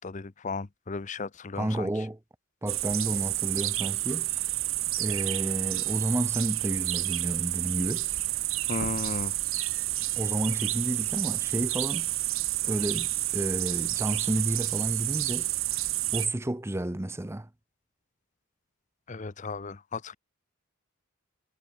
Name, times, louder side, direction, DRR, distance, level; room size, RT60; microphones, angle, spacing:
voice 1, 0.0-1.9 8.7-9.4 19.1-20.2, left 4 dB, 35° left, 0.7 m, -35 dB
voice 2, 1.5-2.2 2.6-4.3 5.0-8.1 10.2-12.1 12.6-15.5 16.1-17.5, right 1 dB, 10° right, 0.6 m, -31 dB
sound 1, 2.7-16.3, right 17 dB, 70° right, 1.8 m, -30 dB
head